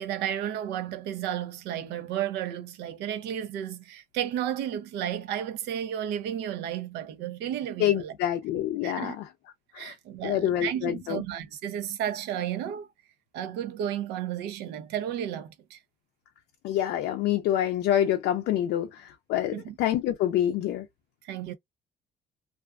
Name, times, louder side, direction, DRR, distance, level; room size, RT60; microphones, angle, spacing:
voice 1, 0.0-8.1 8.8-9.2 9.8-12.9 13.3-15.8 19.5-19.8 21.2-21.5, right 10 dB, 90° right, 0.6 m, -33 dB
voice 2, 7.8-9.2 9.7-9.9 10.2-11.2 16.6-20.9, left 11 dB, 75° left, 0.4 m, -27 dB
2.4 x 2.2 x 2.3 m
cardioid pair, 110°, 17 cm